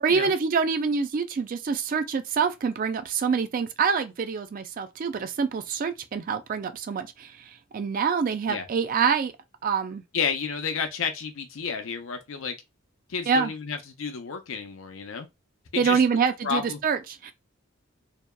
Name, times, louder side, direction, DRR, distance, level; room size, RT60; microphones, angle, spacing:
voice 1, 0.0-9.3 9.6-10.0 13.3-13.5 15.8-17.3, right 6 dB, 45° right, 0.3 m, -26 dB
voice 2, 10.1-12.5 13.1-15.3 15.7-16.0 16.4-16.8, left 6 dB, 75° left, 0.6 m, -31 dB
2.7 x 2.2 x 2.2 m
head